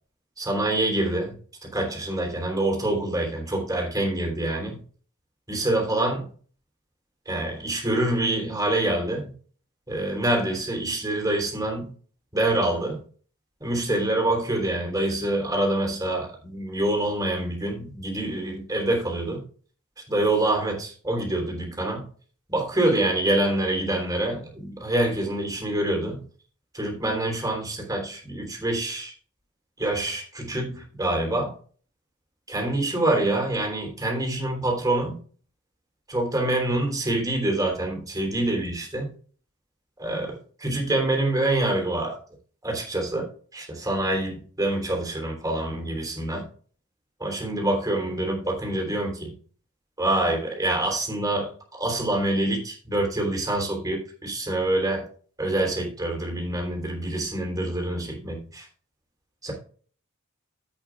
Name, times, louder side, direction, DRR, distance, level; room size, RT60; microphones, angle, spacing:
voice 1, 0.4-1.3 1.6-4.8 5.5-6.3 7.2-9.3 9.9-11.9 12.3-13.0 13.6-19.4 20.1-22.0 22.5-26.2 26.7-29.1 29.8-31.5 32.5-35.2 36.1-39.1 40.0-42.2 42.6-43.3 43.5-46.4 47.2-49.3 50.0-51.5 51.8-55.0 55.4-58.7 59.4-59.5, right 1 dB, 15° right, 0 dB, 3.4 m, -26 dB
15.5 x 6.3 x 2.4 m, 0.42 s
head